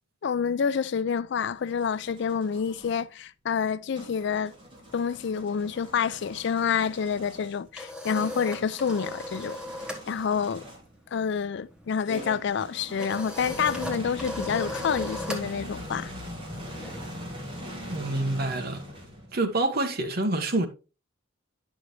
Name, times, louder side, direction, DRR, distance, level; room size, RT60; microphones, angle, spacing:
voice 1, 0.2-4.5 4.9-9.6 10.1-10.6 11.1-16.1, left 6 dB, 60° left, 0.4 m, -28 dB
sound 1, 1.2-3.0 3.9-11.0 12.1-19.4, equal, 25° right, 3.1 m, -42 dB
sound 2, 7.4-10.1 10.3-10.6 10.9-17.6, left 1 dB, 5° right, 1.3 m, -38 dB
voice 2, 17.9-18.8 19.3-20.7, right 2 dB, 50° right, 1.3 m, -27 dB
9.9 x 6.2 x 3.1 m
head